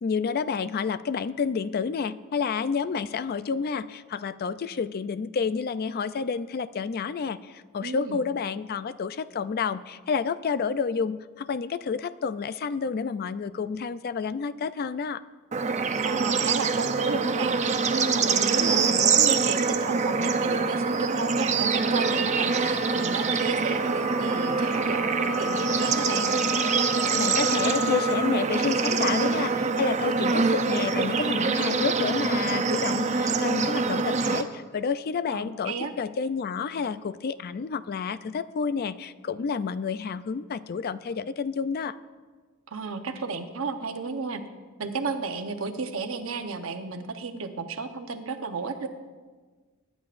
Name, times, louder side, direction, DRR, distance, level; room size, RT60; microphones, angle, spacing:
voice 1, 0.0-15.2 27.1-41.9, left 5 dB, 45° left, 14 dB, 0.4 m, -30 dB
voice 2, 7.8-8.2 16.0-26.3 35.3-35.9 42.7-44.4 44.8-48.9, right 4 dB, 70° right, 6 dB, 0.9 m, -33 dB
Bird / Insect / Frog, 15.5-34.4, right 4 dB, 35° right, 0.6 m, -25 dB
sound 1, 21.8-28.3, left 3 dB, 5° left, 0.8 m, -36 dB
23.5 x 10.5 x 2.5 m, 1.4 s
head